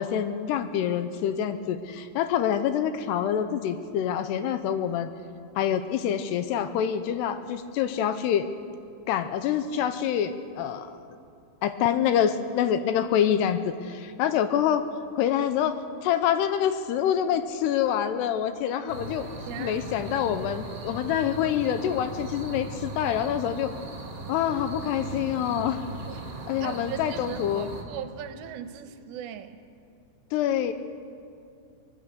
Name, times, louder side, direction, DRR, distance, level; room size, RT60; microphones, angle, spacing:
voice 1, 0.0-5.1 5.6-8.5 9.1-10.9 11.6-14.9 15.2-19.3 19.6-23.7 24.3-25.9 26.5-27.7 30.3-30.7, left 9 dB, 80° left, 10 dB, 2.7 m, -26 dB
sound 1, 18.9-27.8, right 2 dB, 40° right, 3.1 m, -38 dB
voice 2, 19.5-20.1 26.1-26.3 26.6-29.6, right 9 dB, 80° right, 9 dB, 3.1 m, -39 dB
24.0 x 20.0 x 6.8 m, 2.5 s
omnidirectional pair, 5.1 m